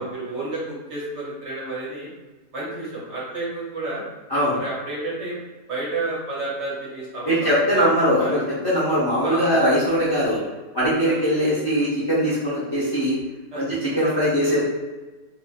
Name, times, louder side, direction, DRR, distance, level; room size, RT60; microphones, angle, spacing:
voice 1, 0.0-2.1 2.5-4.0 4.5-5.4 5.7-7.5 7.7-8.4 9.2-9.5 10.2-10.5 11.0-11.3 13.5-13.6, right 2 dB, 55° right, -5 dB, 0.9 m, -30 dB
voice 2, 7.2-10.4 10.7-13.2 13.5-14.6, equal, 30° left, -11 dB, 0.5 m, -21 dB
2.9 x 2.5 x 2.3 m, 1.2 s
omnidirectional pair, 1.7 m